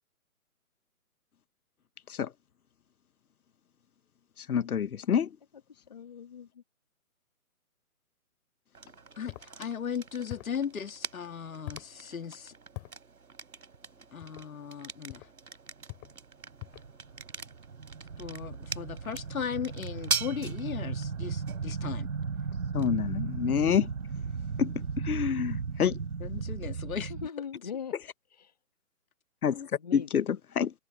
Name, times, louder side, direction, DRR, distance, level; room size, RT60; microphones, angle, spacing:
voice 1, 4.4-5.3 22.7-23.9 24.6-26.0 29.4-29.6 29.9-30.2 30.6-30.7, left 8 dB, 85° left, 0.9 m, -27 dB
voice 2, 5.7-6.6 27.1-27.9 28.3-28.5 29.8-30.1, left 7 dB, 30° left, 1.4 m, -41 dB
sound 1, 8.7-26.5, right 5 dB, 85° right, 4.7 m, -43 dB
voice 3, 9.1-12.5 14.1-15.3 18.2-22.1 26.2-27.1 29.4-29.7, left 7 dB, 70° left, 1.8 m, -37 dB
sound 2, 9.3-9.5 10.3-10.6 11.7-11.9 12.7-13.0 14.2-14.5 15.1-15.3 15.9-16.2 16.6-16.9, left 27 dB, 10° left, 2.8 m, -44 dB
sound 3, 16.4-27.3, right 5 dB, 65° right, 3.6 m, -36 dB
hypercardioid pair, 175°, 43 cm